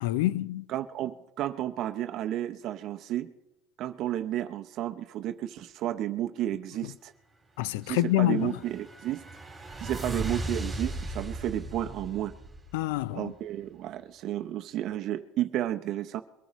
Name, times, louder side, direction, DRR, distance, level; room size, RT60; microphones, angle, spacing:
voice 1, 0.0-0.6 7.6-8.5 12.7-13.3, left 15 dB, 85° left, 0.4 m, -27 dB
voice 2, 0.7-3.3 3.8-7.1 7.8-9.2 9.8-12.3 13.1-16.2, right 12 dB, 45° right, 0.6 m, -32 dB
sound 1, 8.2-13.1, right 2 dB, ahead, 2.7 m, -37 dB
22.5 x 13.5 x 3.0 m
cardioid pair, 150°, 0 cm